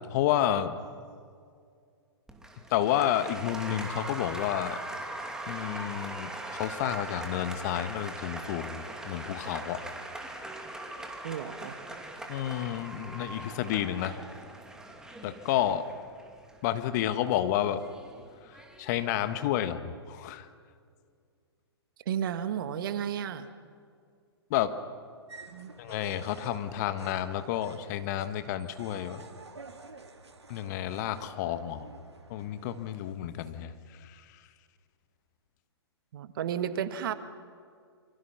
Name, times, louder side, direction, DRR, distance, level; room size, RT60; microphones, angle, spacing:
voice 1, 0.1-0.8 2.7-4.8 5.5-9.9 12.3-14.2 15.2-15.9 16.6-17.8 18.4-20.5 24.5-24.8 25.8-29.2 30.5-31.9 32.3-34.4, left 11 dB, 40° left, 10 dB, 1.5 m, -30 dB
Applause, 2.3-19.4, right 2 dB, 5° right, 2.4 m, -41 dB
voice 2, 11.2-11.8 22.0-23.5 25.5-25.7 36.1-37.1, right 9 dB, 55° right, 10 dB, 1.7 m, -32 dB
sound 1, 25.3-33.1, right 3 dB, 80° right, 2.5 m, -50 dB
27.5 x 25.0 x 5.8 m, 2.2 s
figure-of-eight pair, 115°, 14 cm